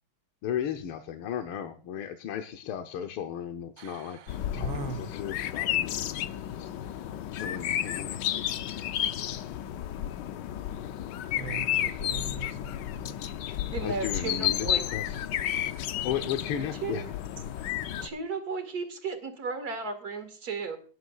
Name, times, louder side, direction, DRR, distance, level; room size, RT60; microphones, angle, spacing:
voice 1, 0.4-4.2 4.5-6.1 6.5-6.7 7.3-8.2 13.8-15.3 16.0-17.1, left 9 dB, 90° left, 1.7 m, -35 dB
voice 2, 3.8-5.1 11.3-13.3, right 6 dB, 80° right, 1.8 m, -41 dB
sound 1, 4.3-18.1, left 11 dB, 70° left, 1.1 m, -32 dB
voice 3, 13.5-14.8 16.8-17.0 18.0-20.8, right 4 dB, 45° right, 2.4 m, -34 dB
18.0 x 10.5 x 2.4 m
omnidirectional pair, 2.3 m